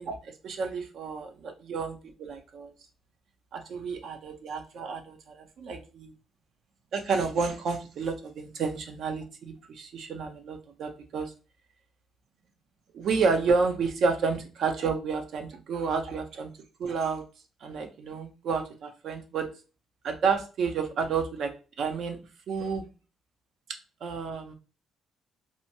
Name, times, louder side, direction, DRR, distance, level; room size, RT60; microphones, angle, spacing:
voice 1, 0.0-2.7 3.5-6.1 6.9-11.3 12.9-16.5 16.8-17.2 17.6-19.5 20.0-21.5 21.8-22.2 22.5-22.9 24.0-24.5, right 5 dB, 70° right, 5 dB, 0.6 m, -30 dB
2.8 x 2.2 x 2.7 m, 0.34 s
cardioid pair, 90°, 0 cm